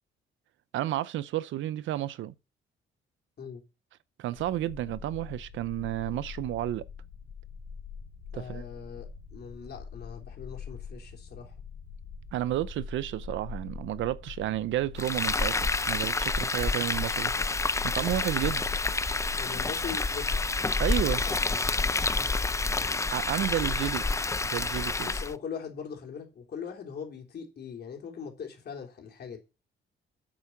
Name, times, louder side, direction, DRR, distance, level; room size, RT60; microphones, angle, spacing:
voice 1, 0.7-2.3 4.2-6.9 8.3-8.6 12.3-17.3 17.8-18.6 20.8-21.2 23.1-24.0 24.4-25.1, right 14 dB, 75° right, 0.6 m, -31 dB
sound 1, 4.4-21.5, left 5 dB, 85° left, 2.7 m, -43 dB
voice 2, 8.3-11.5 19.4-20.7 21.0-21.6 25.0-29.4, left 7 dB, 55° left, 3.2 m, -41 dB
Frying (food), 15.0-25.3, left 3 dB, 15° left, 0.5 m, -28 dB
8.7 x 7.2 x 5.9 m
cardioid pair, 90°, 20 cm